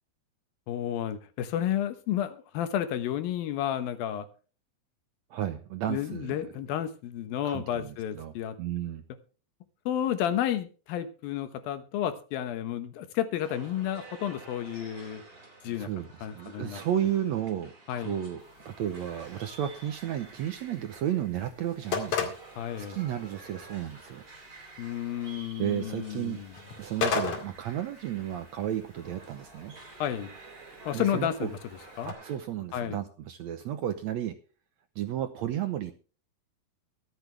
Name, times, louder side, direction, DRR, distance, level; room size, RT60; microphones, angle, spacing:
voice 1, 0.7-4.3 5.9-8.6 9.9-15.2 15.6-15.9 16.2-16.8 17.9-18.2 22.6-23.0 24.8-26.5 30.0-30.3 30.9-31.6 32.0-32.1 32.7-33.0, left 10 dB, 85° left, 3.0 m, -31 dB
voice 2, 5.3-6.5 7.5-9.0 15.6-17.7 18.0-22.3 22.8-24.2 25.6-26.4 26.8-29.7 30.9-31.5 32.1-34.4 35.0-35.9, right 11 dB, 70° right, 1.8 m, -33 dB
sound 1, 13.4-32.4, right 3 dB, 30° right, 4.1 m, -51 dB
sound 2, 18.4-32.1, left 7 dB, 60° left, 3.4 m, -39 dB
23.5 x 8.2 x 3.4 m
omnidirectional pair, 4.0 m